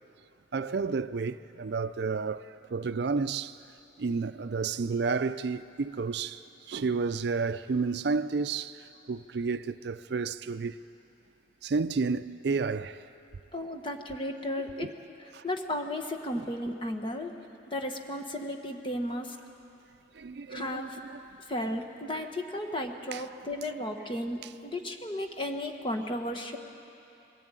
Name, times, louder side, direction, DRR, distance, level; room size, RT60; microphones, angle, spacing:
voice 1, 0.5-3.6 4.0-10.7 11.6-13.0 14.8-14.9 15.3-15.4 16.3-16.4 20.1-21.2 23.1-23.2, right 4 dB, 60° right, 0.4 m, -31 dB
voice 2, 13.5-14.9 15.2-17.3 17.7-19.4 20.5-21.0 21.5-26.6, left 1 dB, 25° left, 1.2 m, -34 dB
21.5 x 14.5 x 9.0 m
head